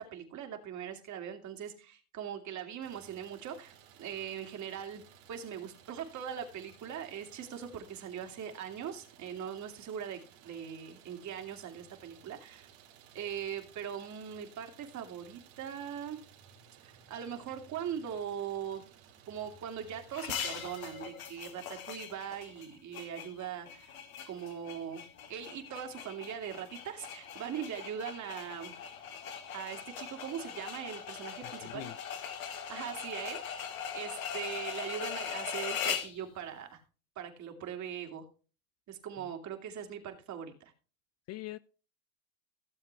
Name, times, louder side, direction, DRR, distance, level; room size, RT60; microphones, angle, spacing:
voice 1, 0.0-5.0 5.3-12.7 13.1-16.2 16.8-18.8 19.3-24.0 24.3-25.0 25.3-28.7 29.5-31.9 32.5-36.8 37.2-38.3 38.9-40.5, right 8 dB, 45° right, 2.6 m, -41 dB
Idling, 2.8-21.1, right 8 dB, 70° right, 2.6 m, -58 dB
sound 1, 20.1-36.2, left 8 dB, 85° left, 1.8 m, -41 dB
voice 2, 31.4-32.0 39.2-39.3 41.3-41.6, left 17 dB, 40° left, 0.5 m, -43 dB
16.5 x 7.4 x 3.4 m
hypercardioid pair, 95°, 41 cm